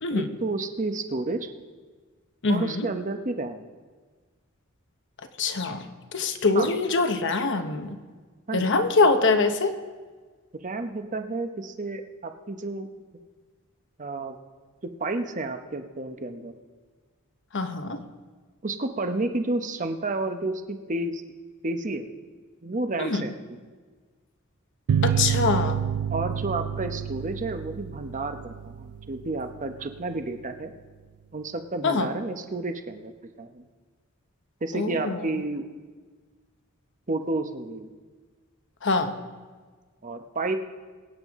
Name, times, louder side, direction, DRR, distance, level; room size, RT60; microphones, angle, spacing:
voice 1, 0.1-1.5 2.5-3.7 6.5-6.7 8.5-8.8 10.6-13.1 14.0-14.4 15.0-16.6 18.6-21.2 21.6-22.1 22.6-23.6 26.1-30.7 31.3-33.1 33.4-33.6 34.6-35.6 37.1-37.9 40.0-40.6, right 2 dB, 35° right, 7 dB, 0.9 m, -31 dB
voice 2, 2.4-2.9 5.4-5.9 6.1-8.0 8.5-9.7 17.5-18.0 23.0-23.3 25.0-25.8 31.8-32.1 34.7-35.2 38.8-39.2, left 3 dB, 60° left, 7 dB, 1.0 m, -24 dB
sound 1, 24.9-30.0, right 8 dB, 90° right, 0.4 m, -29 dB
22.5 x 9.1 x 3.6 m, 1.4 s
head